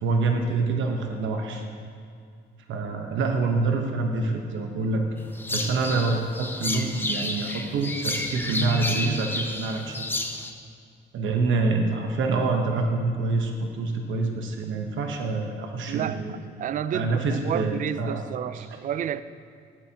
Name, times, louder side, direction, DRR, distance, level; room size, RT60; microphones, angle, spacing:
voice 1, 0.0-1.7 2.7-5.0 5.5-10.1 11.1-16.3 16.9-18.3 18.5-18.7, right 3 dB, 75° right, 1.0 m, -26 dB
sound 1, 5.4-10.5, left 2 dB, 10° left, 0.8 m, -31 dB
voice 2, 15.9-19.2, right 9 dB, 40° right, 0.4 m, -30 dB
13.0 x 12.0 x 2.9 m
cardioid pair, 90°, 20 cm